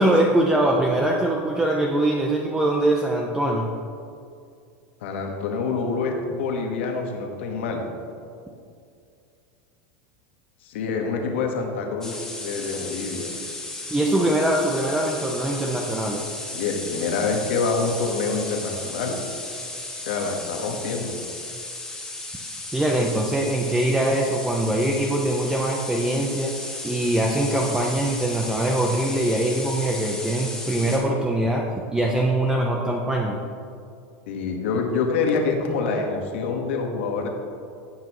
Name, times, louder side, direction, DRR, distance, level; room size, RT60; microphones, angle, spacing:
voice 1, 0.0-3.7 13.9-16.2 22.7-26.5 26.8-31.6 31.9-33.4, right 1 dB, 10° right, 0 dB, 0.7 m, -22 dB
voice 2, 5.0-7.9 10.6-13.3 16.5-19.2 20.0-21.2 34.3-37.3, left 4 dB, 80° left, 2 dB, 1.5 m, -26 dB
sound 1, 12.0-31.0, left 2 dB, 10° left, 1.8 m, -35 dB
16.0 x 6.1 x 3.1 m, 2.4 s
supercardioid pair, 130°, 6 cm